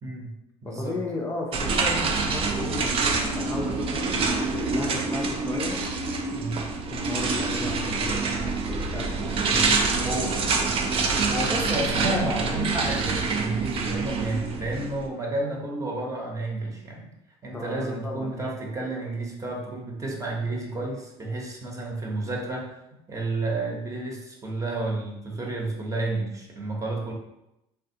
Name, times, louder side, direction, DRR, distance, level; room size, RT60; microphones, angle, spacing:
voice 1, 0.0-0.3 0.6-1.0 6.3-6.6 9.5-9.6 10.0-10.3 11.3-17.1 17.4-22.7 23.1-27.1, right 2 dB, 20° right, -1 dB, 0.8 m, -31 dB
voice 2, 0.6-5.8 6.9-10.7 12.0-12.4 17.5-18.4, left 2 dB, 20° left, -2 dB, 0.4 m, -35 dB
sound 1, 1.5-15.1, right 4 dB, 40° right, 0.5 m, -26 dB
3.3 x 2.3 x 2.7 m, 0.87 s
supercardioid pair, 90°, 14 cm